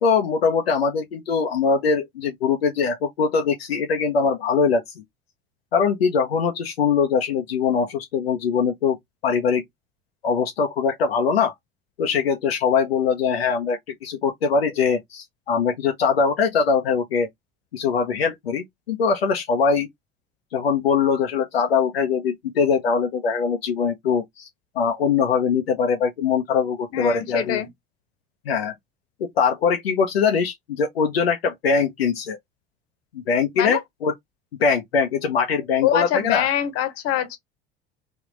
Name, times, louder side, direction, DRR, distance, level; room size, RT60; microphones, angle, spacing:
voice 1, 0.0-4.8 5.7-9.0 9.2-9.6 10.2-11.5 12.0-17.3 17.7-19.9 20.5-24.5 24.7-27.6 28.5-28.7 29.2-32.4 33.1-34.1 34.6-36.5, left 5 dB, 80° left, 0.6 m, -22 dB
voice 2, 26.9-27.7 33.6-33.8 35.8-37.4, left 11 dB, 50° left, 1.0 m, -24 dB
3.5 x 2.4 x 3.7 m
figure-of-eight pair, 65°, 30 cm